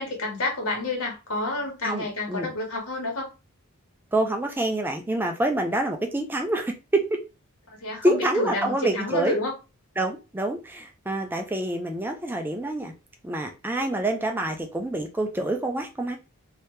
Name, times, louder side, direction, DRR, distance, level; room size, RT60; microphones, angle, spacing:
voice 1, 0.0-3.3 7.8-9.5, left 2 dB, 80° left, 1.5 m, -29 dB
voice 2, 1.8-2.5 4.1-7.0 8.0-9.4 10.0-12.9 13.2-16.2, right 1 dB, 10° right, 0.4 m, -27 dB
3.2 x 2.8 x 3.2 m
head